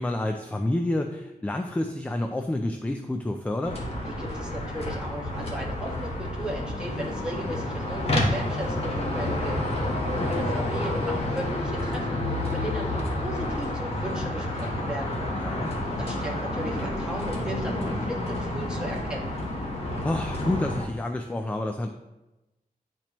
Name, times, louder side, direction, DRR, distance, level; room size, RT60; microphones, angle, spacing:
voice 1, 0.0-3.8 10.2-10.3 15.3-15.7 20.0-21.9, left 1 dB, 10° left, 4 dB, 0.3 m, -29 dB
sound 1, 3.6-20.9, left 1 dB, 45° left, 1.1 m, -29 dB
voice 2, 4.0-9.6 10.3-15.2 16.0-19.3, right 1 dB, 5° right, -4 dB, 1.4 m, -36 dB
10.0 x 4.4 x 3.0 m, 0.99 s
wide cardioid pair, 175°, 15 cm